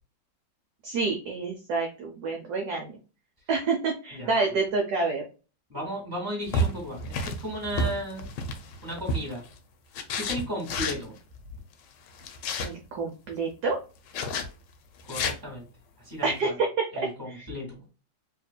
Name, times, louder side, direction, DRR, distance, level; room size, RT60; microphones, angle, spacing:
voice 1, 0.8-3.0 3.5-5.2 12.6-13.8 16.2-16.7 17.3-17.5, right 3 dB, 65° right, 2 dB, 1.1 m, -28 dB
voice 2, 4.1-4.4 5.7-8.3 8.8-9.4 10.1-11.1 15.1-15.6 16.0-16.6 16.9-17.7, equal, 10° right, -3 dB, 2.0 m, -35 dB
sound 1, 6.5-9.5 9.9-11.0 12.1-12.7 14.1-14.5 15.0-15.4, left 1 dB, 70° left, 1.2 m, -30 dB
4.4 x 3.2 x 2.2 m, 0.34 s
omnidirectional pair, 2.3 m